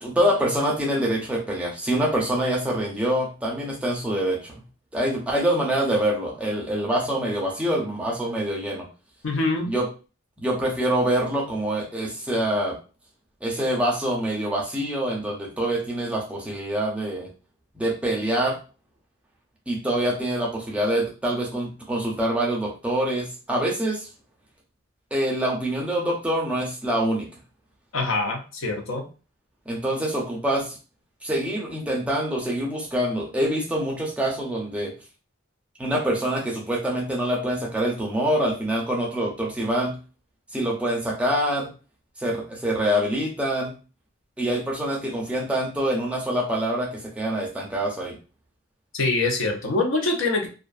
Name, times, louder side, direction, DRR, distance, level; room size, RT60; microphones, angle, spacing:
voice 1, 0.0-4.5 4.9-8.9 9.7-9.9 10.4-12.7 13.4-17.3 17.7-18.6 19.7-24.1 25.1-27.3 29.7-30.8 31.2-34.9 35.8-39.9 40.5-41.7 42.2-43.7 44.4-46.9 47.2-48.2, right 1 dB, 5° right, -3 dB, 0.4 m, -25 dB
voice 2, 9.2-9.7 27.9-29.1 48.9-50.5, left 3 dB, 70° left, 3 dB, 0.6 m, -24 dB
2.4 x 2.3 x 2.4 m, 0.34 s
head